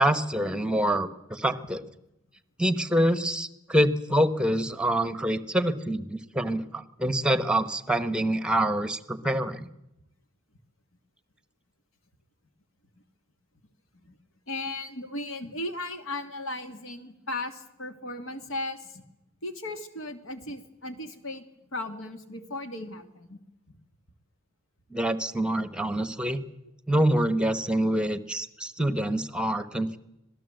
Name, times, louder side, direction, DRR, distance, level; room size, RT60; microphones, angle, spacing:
voice 1, 0.0-1.8 2.6-9.7 24.9-26.4 26.9-30.0, right 1 dB, 5° right, 13 dB, 1.1 m, -26 dB
voice 2, 14.5-19.0 19.4-21.5 21.7-23.4 23.7-23.8, left 2 dB, 65° left, 8 dB, 2.3 m, -36 dB
26.0 x 17.5 x 7.9 m, 0.87 s
head